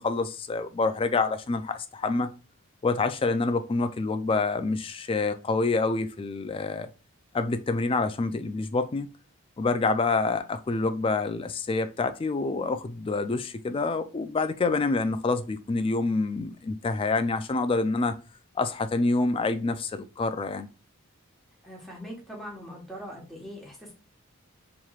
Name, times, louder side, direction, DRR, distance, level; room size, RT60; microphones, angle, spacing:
voice 1, 0.0-2.3 2.8-6.9 7.3-9.1 9.6-18.2 18.6-20.7, left 3 dB, 25° left, 0.3 m, -27 dB
voice 2, 21.6-23.9, equal, ahead, 1.2 m, -41 dB
4.6 x 3.0 x 2.4 m
head